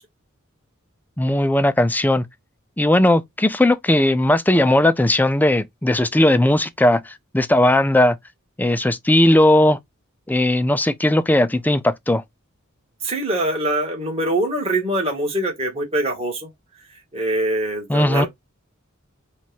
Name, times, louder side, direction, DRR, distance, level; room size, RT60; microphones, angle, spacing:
voice 1, 1.2-2.3 2.8-8.2 8.6-9.8 10.3-12.2 17.9-18.3, left 1 dB, 10° left, 0.5 m, -17 dB
voice 2, 13.0-16.5 17.1-18.3, right 1 dB, 30° right, 1.9 m, -23 dB
5.2 x 2.5 x 3.5 m
head